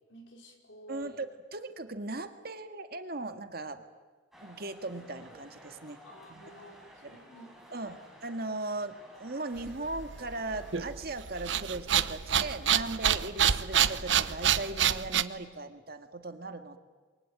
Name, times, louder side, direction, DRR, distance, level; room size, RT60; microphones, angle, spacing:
voice 1, 0.1-1.2 6.0-8.1, equal, 75° left, 3 dB, 5.0 m, -52 dB
voice 2, 0.9-1.3 1.5-3.8 4.4-6.0 6.3-6.5 7.0-7.1 7.7-8.0 8.2-16.8, right 2 dB, 55° right, 7 dB, 1.9 m, -38 dB
sound 1, 4.3-10.7, equal, ahead, 6.2 m, -54 dB
sound 2, 9.6-15.2, right 9 dB, 70° right, 0.9 m, -27 dB
28.5 x 23.5 x 9.0 m, 1.4 s
head